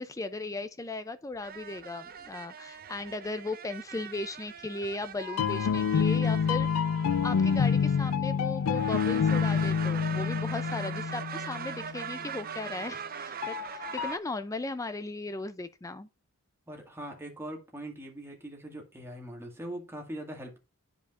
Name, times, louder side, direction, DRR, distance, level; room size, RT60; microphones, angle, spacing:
voice 1, 0.0-6.7 7.2-16.1, left 2 dB, 15° left, 0.4 m, -37 dB
sound 1, 1.4-8.4 8.7-14.2, right 7 dB, 40° right, 0.7 m, -41 dB
sound 2, 5.3-11.9 13.4-14.2, left 6 dB, 75° left, 0.4 m, -27 dB
voice 2, 16.7-20.6, right 1 dB, 10° right, 1.9 m, -41 dB
10.5 x 5.0 x 2.5 m
head